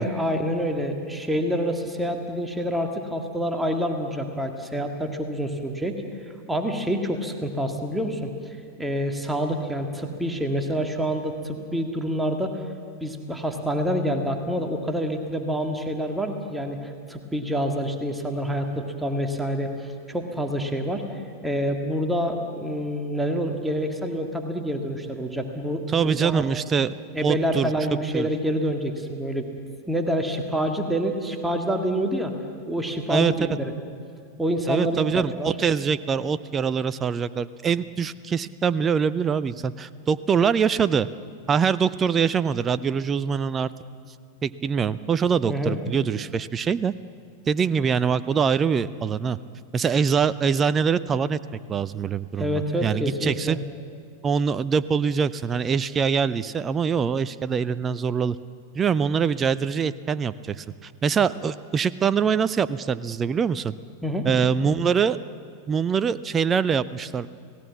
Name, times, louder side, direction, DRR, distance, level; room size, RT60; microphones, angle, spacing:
voice 1, 0.0-6.0 6.5-12.6 13.0-21.0 21.4-26.4 27.1-29.5 29.9-32.3 32.7-33.7 34.4-35.6 45.5-45.8 52.4-53.6 64.0-64.3, equal, 5° right, 4 dB, 2.0 m, -27 dB
voice 2, 25.9-27.7 28.1-28.3 33.1-33.3 34.7-41.1 41.5-43.7 44.4-46.9 47.5-49.4 49.7-51.4 51.7-53.6 54.2-58.4 58.7-63.7 64.2-65.2 65.7-67.3, right 6 dB, 20° right, 16 dB, 0.6 m, -24 dB
30.0 x 18.0 x 7.4 m, 2.2 s
figure-of-eight pair, 90°, 0 cm